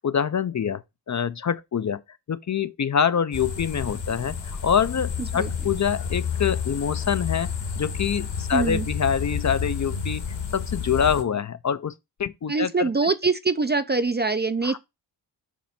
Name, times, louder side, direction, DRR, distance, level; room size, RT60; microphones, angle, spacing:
voice 1, 0.0-2.0 2.3-10.2 10.5-11.9 12.2-12.9 14.6-14.8, left 7 dB, 40° left, 0.5 m, -25 dB
sound 1, 3.3-11.2, left 6 dB, 65° left, 1.5 m, -30 dB
voice 2, 8.5-8.9 12.5-14.8, right 4 dB, 25° right, 0.4 m, -24 dB
7.2 x 2.6 x 5.7 m
cardioid pair, 75°, 46 cm